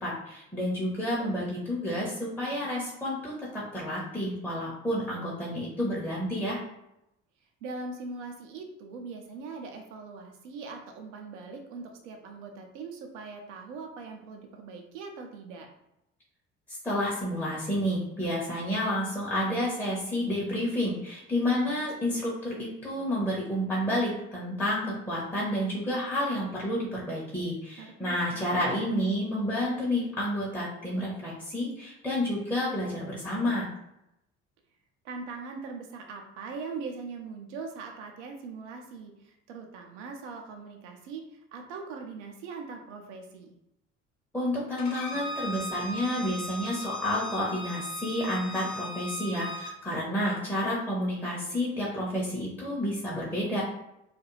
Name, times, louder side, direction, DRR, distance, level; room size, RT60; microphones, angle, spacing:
voice 1, 0.0-6.6 16.7-33.7 44.3-53.6, left 1 dB, 5° left, -6 dB, 0.7 m, -30 dB
voice 2, 7.6-15.7 27.8-28.9 35.0-43.6, right 4 dB, 70° right, 3 dB, 0.6 m, -41 dB
Bowed string instrument, 44.8-49.7, equal, 60° left, 0.7 m, -38 dB
2.4 x 2.2 x 3.0 m, 0.85 s
figure-of-eight pair, 55°, 38 cm